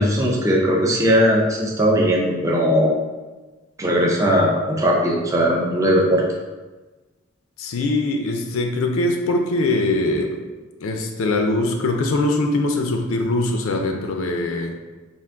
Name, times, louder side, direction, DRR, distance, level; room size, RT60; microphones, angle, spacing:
voice 1, 0.0-3.0 3.8-6.2, equal, 15° right, -2 dB, 0.4 m, -18 dB
voice 2, 7.6-10.4 10.8-14.8, left 2 dB, 70° left, 3 dB, 0.4 m, -22 dB
3.7 x 2.5 x 3.4 m, 1.2 s
head